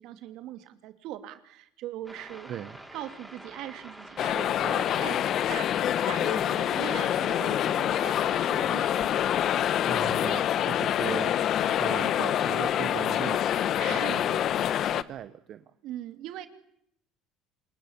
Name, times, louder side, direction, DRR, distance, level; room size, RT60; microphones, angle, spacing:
voice 1, 0.0-2.5 2.9-5.2 5.5-5.7 6.1-8.9 13.8-14.2 15.8-16.5, right 13 dB, 70° right, 9 dB, 2.7 m, -40 dB
sound 1, 2.1-9.7, right 1 dB, 5° right, 7.0 m, -46 dB
voice 2, 2.5-2.8 9.8-11.4 11.8-14.4 14.7-15.6, right 10 dB, 55° right, 12 dB, 1.2 m, -39 dB
sound 2, 4.2-15.0, left 11 dB, 55° left, 1.1 m, -26 dB
28.0 x 21.0 x 9.9 m, 0.74 s
supercardioid pair, 90°, 0 cm